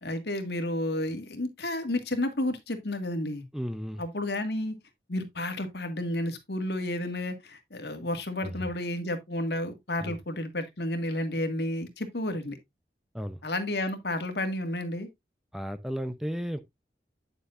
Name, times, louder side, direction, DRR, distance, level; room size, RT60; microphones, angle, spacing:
voice 1, 0.0-3.4 4.0-4.8 5.1-12.6 13.4-15.1, left 1 dB, 70° left, 1.8 m, -31 dB
voice 2, 3.5-4.0 8.4-8.5 10.0-10.2 13.1-13.4 15.5-16.6, equal, ahead, 0.6 m, -34 dB
9.2 x 7.0 x 2.5 m
head